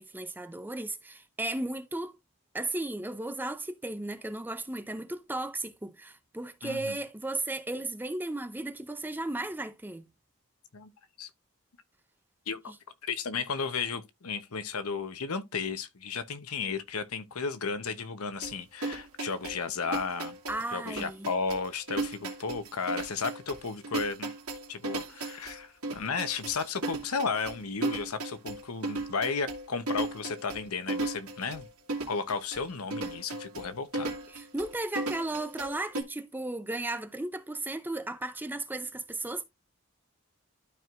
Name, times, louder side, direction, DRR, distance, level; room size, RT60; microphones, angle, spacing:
voice 1, 0.0-2.2 2.5-10.1 12.7-12.8 20.5-21.3 34.3-39.4, right 2 dB, 10° right, 0.5 m, -35 dB
voice 2, 6.6-7.0 10.7-10.9 11.2-11.3 12.5-12.7 13.0-20.4 20.7-24.3 24.7-31.7 32.1-34.1, left 5 dB, 85° left, 0.9 m, -34 dB
sound 1, 18.4-36.0, right 2 dB, 80° right, 2.2 m, -36 dB
12.5 x 4.6 x 2.5 m
head